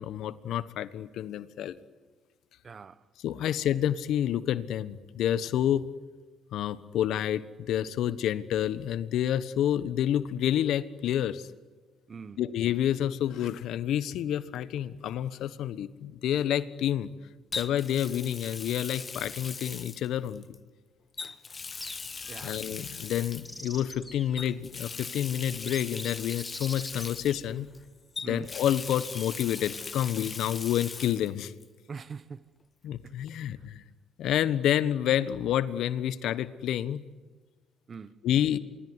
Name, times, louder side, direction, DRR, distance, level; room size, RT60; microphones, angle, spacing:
voice 1, 0.0-1.7 3.2-5.9 6.5-11.5 12.4-17.1 17.5-20.6 22.2-27.7 28.2-31.5 32.8-33.8 34.2-37.0 38.2-38.6, left 11 dB, 70° left, 1.3 m, -29 dB
voice 2, 2.6-3.0 12.1-12.4 22.3-22.6 28.2-28.5 31.9-32.4 33.0-33.1 37.9-38.2, right 5 dB, 40° right, 1.2 m, -42 dB
Water tap faucet, 14.5-14.8 17.5-20.6 21.1-23.6 24.4-27.8 28.1-31.3 31.6-31.7 33.3-33.4, left 4 dB, 35° left, 1.5 m, -40 dB
sound 1, 21.8-22.4 23.2-24.4 25.0-25.1 25.5-27.9 28.6-29.6, left 1 dB, 5° left, 3.9 m, -45 dB
26.0 x 23.0 x 9.8 m
supercardioid pair, 70°, 0 cm